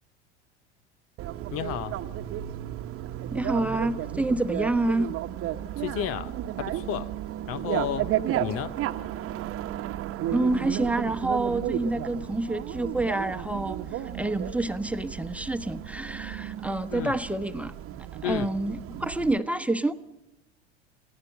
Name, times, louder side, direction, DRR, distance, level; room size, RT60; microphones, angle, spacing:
Bicycle, 1.2-19.4, right 12 dB, 40° right, 1.3 m, -33 dB
voice 1, 1.5-2.0 5.8-7.2 7.5-8.8 16.9-17.2 18.2-18.5, left 10 dB, 45° left, 0.9 m, -32 dB
voice 2, 3.3-5.1 10.3-17.7 18.2-19.9, right 2 dB, 5° right, 1.2 m, -28 dB
28.0 x 16.5 x 7.0 m
hypercardioid pair, 80°, 33 cm